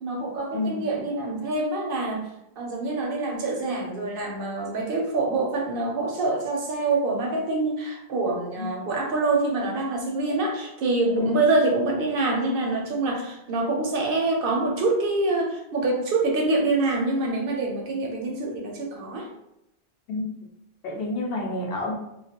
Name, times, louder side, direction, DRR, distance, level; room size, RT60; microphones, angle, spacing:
voice 1, 0.0-2.2 2.6-19.3, right 2 dB, 65° right, 0 dB, 0.7 m, -25 dB
voice 2, 0.5-0.9 8.6-8.8 11.2-11.4 20.1-20.4 20.8-21.9, left 2 dB, 75° left, -1 dB, 0.8 m, -29 dB
2.2 x 2.1 x 2.8 m, 0.84 s
omnidirectional pair, 1.0 m